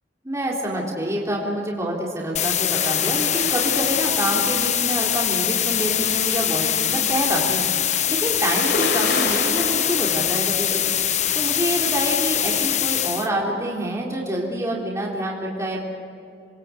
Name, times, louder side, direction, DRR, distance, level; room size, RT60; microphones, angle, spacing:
voice 1, 0.2-10.9 11.3-15.9, right 1 dB, 15° right, -3 dB, 3.8 m, -27 dB
sound 1, 2.4-13.3, left 10 dB, 40° left, 0.9 m, -23 dB
sound 2, 2.7-10.5, left 3 dB, 70° left, 3.9 m, -32 dB
27.5 x 23.0 x 8.5 m, 2.6 s
head